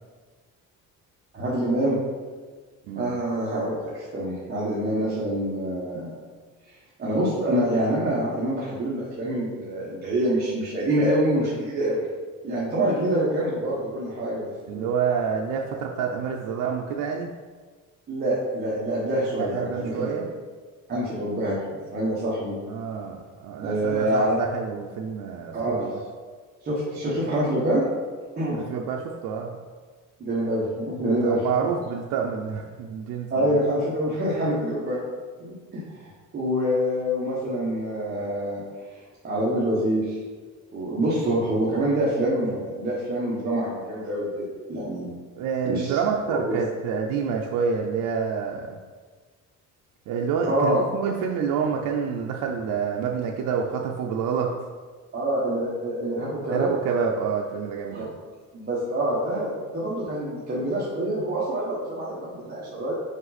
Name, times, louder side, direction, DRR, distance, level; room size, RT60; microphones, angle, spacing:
voice 1, 1.3-2.0 2.9-6.1 6.7-6.8 7.0-12.0 12.4-14.9 18.1-20.2 20.9-21.6 21.9-22.6 23.6-24.4 25.5-26.0 26.6-27.8 28.3-28.6 30.2-31.4 33.3-35.1 35.4-38.6 38.9-39.0 39.2-40.2 40.7-45.1 45.6-46.0 46.4-46.6 50.5-50.8 55.1-56.7 57.9-58.1 58.5-62.9, right 1 dB, 30° right, -7 dB, 1.2 m, -26 dB
voice 2, 2.8-3.2 14.7-17.3 19.4-20.3 22.7-26.0 28.5-29.5 31.2-33.6 41.7-41.8 45.3-48.8 50.1-54.5 56.5-58.1, right 6 dB, 70° right, 0 dB, 0.6 m, -28 dB
5.3 x 5.1 x 4.1 m, 1.5 s
cardioid pair, 170°, 33 cm